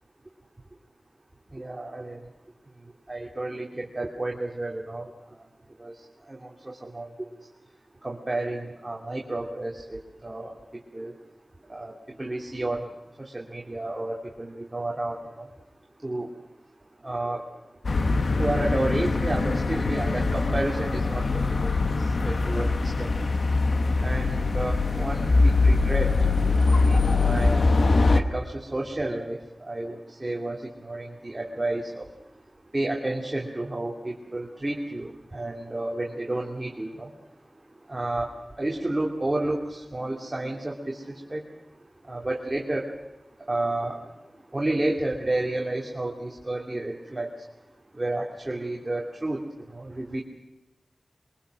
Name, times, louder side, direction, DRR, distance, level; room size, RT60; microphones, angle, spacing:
voice 1, 1.5-2.2 3.1-5.1 5.8-5.9 6.3-7.1 8.0-10.5 10.9-11.1 11.7-11.9 12.2-12.9 13.2-15.5 16.0-16.3 17.0-17.4 18.4-21.8 22.2-23.1 24.0-26.1 26.8-27.6 28.1-32.1 32.7-37.1 37.9-38.3 38.6-41.4 42.1-42.9 43.5-44.0 44.5-47.3 48.0-49.4 49.7-50.2, right 2 dB, 30° right, 0 dB, 2.6 m, -31 dB
sound 1, 17.8-28.2, left 3 dB, 70° left, 1.2 m, -23 dB
23.0 x 23.0 x 6.4 m, 1.0 s
wide cardioid pair, 60°, 0 cm